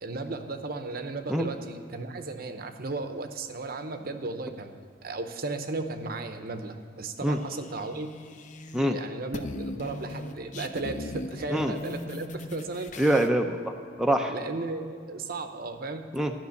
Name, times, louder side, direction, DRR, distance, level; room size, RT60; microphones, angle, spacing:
voice 1, 0.0-8.1 8.9-12.9 14.3-16.1, right 3 dB, 55° right, 7 dB, 0.8 m, -35 dB
sound 1, 7.2-8.9 9.2-13.3, left 1 dB, 45° left, 0.6 m, -39 dB
voice 2, 13.0-13.7 14.0-14.3 16.1-16.3, right 1 dB, 5° right, 3 dB, 0.5 m, -24 dB
12.0 x 6.2 x 8.2 m, 2.3 s
head